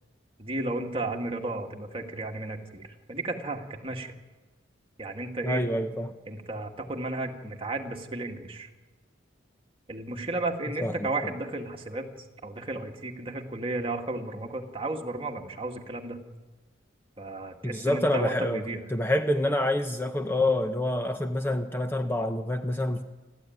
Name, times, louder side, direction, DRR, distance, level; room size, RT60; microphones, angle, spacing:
voice 1, 0.4-4.1 5.0-5.6 6.3-8.7 9.9-12.1 12.4-16.2 17.2-18.8, right 2 dB, 30° right, 2 dB, 2.1 m, -33 dB
voice 2, 5.4-6.2 10.8-11.3 17.6-23.0, left 1 dB, 10° left, 6 dB, 0.8 m, -27 dB
28.0 x 13.5 x 9.5 m, 1.2 s
head